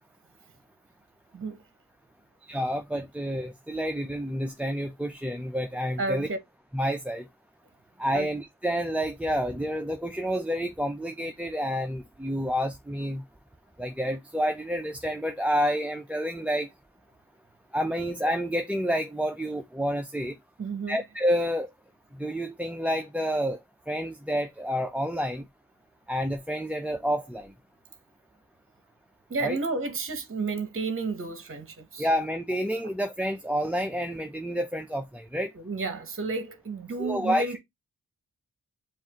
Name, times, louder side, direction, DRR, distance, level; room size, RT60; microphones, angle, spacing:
voice 1, 2.4-6.3 6.7-7.3 8.0-13.2 13.8-16.7 17.7-20.4 20.9-21.7 22.2-23.6 23.9-25.5 26.1-27.5 29.4-29.6 32.0-35.5 37.0-37.5, equal, 5° right, 0.4 m, -29 dB
voice 2, 6.0-6.4 8.1-8.3 20.6-21.1 29.3-32.1 35.5-37.6, right 3 dB, 35° right, 0.9 m, -31 dB
7.1 x 2.5 x 2.8 m
cardioid pair, 55°, 35 cm